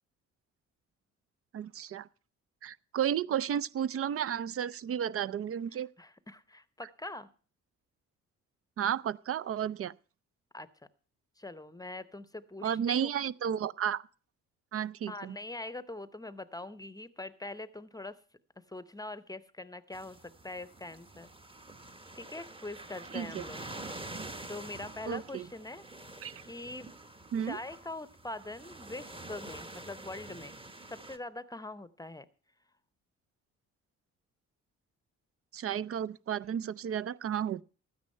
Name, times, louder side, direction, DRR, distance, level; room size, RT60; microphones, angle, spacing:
voice 1, 1.5-2.1 2.6-5.9 8.8-9.9 12.6-14.0 14.7-15.4 23.1-23.4 25.1-25.5 26.2-26.3 27.3-27.6 35.5-37.6, right 9 dB, 50° right, 0.5 m, -32 dB
voice 2, 5.7-7.3 10.5-10.7 11.4-13.1 15.1-18.2 18.7-21.3 22.1-23.6 24.5-25.8 26.5-26.9 27.4-30.5 30.9-32.3, left 2 dB, 10° left, 0.8 m, -43 dB
sound 1, 19.9-31.2, right 2 dB, 15° right, 1.2 m, -47 dB
13.0 x 9.6 x 5.5 m
cardioid pair, 90°, 30 cm